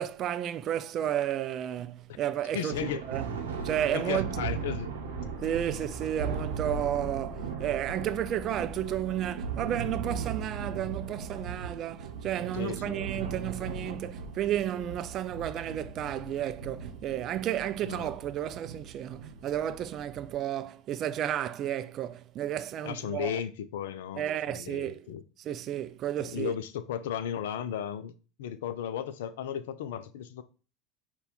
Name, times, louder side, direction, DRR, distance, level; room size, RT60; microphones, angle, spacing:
voice 1, 0.0-3.3 3.6-4.4 5.4-23.4 24.2-25.0 25.4-26.5, right 11 dB, 40° right, 0.3 m, -32 dB
voice 2, 2.1-3.0 3.9-4.9 12.5-13.1 17.8-18.1 22.8-25.2 26.2-28.1 28.4-30.4, left 9 dB, 65° left, 0.4 m, -35 dB
Thunder, 2.7-20.4, right 5 dB, 70° right, 0.7 m, -38 dB
sound 1, 4.9-10.9, left 2 dB, ahead, 1.3 m, -46 dB
5.4 x 2.3 x 3.9 m
figure-of-eight pair, 75°, 0 cm